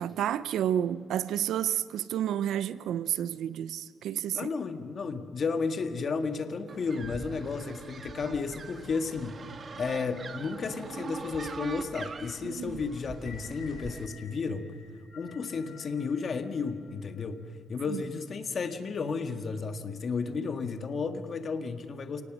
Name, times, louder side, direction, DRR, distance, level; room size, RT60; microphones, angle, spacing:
voice 1, 0.0-4.5 12.4-12.8 17.9-18.0, right 10 dB, 75° right, 0.6 m, -30 dB
voice 2, 4.3-9.4 9.8-14.7 15.2-22.2, left 5 dB, 45° left, 1.7 m, -33 dB
sound 1, 6.7-14.1, right 4 dB, 40° right, 1.6 m, -42 dB
sound 2, 13.1-17.4, left 7 dB, 75° left, 2.1 m, -53 dB
28.5 x 18.5 x 6.3 m
cardioid pair, 90°, 0 cm